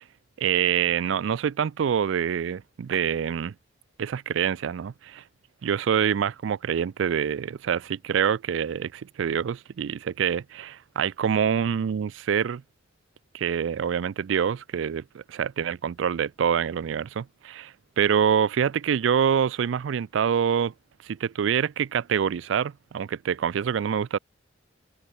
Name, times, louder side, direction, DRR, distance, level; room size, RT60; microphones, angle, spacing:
voice 1, 0.4-3.5 4.0-5.2 5.6-12.6 13.3-20.7 21.0-24.2, right 8 dB, 80° right, 0.4 m, -26 dB
open air
head